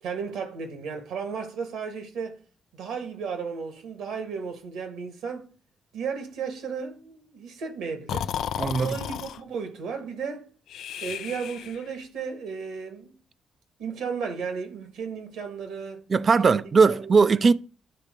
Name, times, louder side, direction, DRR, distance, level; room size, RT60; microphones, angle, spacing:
voice 1, 0.0-2.4 2.7-5.5 5.9-8.3 8.7-10.5 11.0-13.1 13.8-16.0 16.4-16.6 17.0-17.4, right 6 dB, 75° right, 1.7 m, -34 dB
Breathing, 8.1-9.4 10.7-11.9, left 9 dB, 70° left, 0.4 m, -33 dB
voice 2, 8.6-9.0 16.1-17.5, right 4 dB, 45° right, 0.5 m, -19 dB
10.5 x 3.6 x 5.1 m
hypercardioid pair, 45°, 0 cm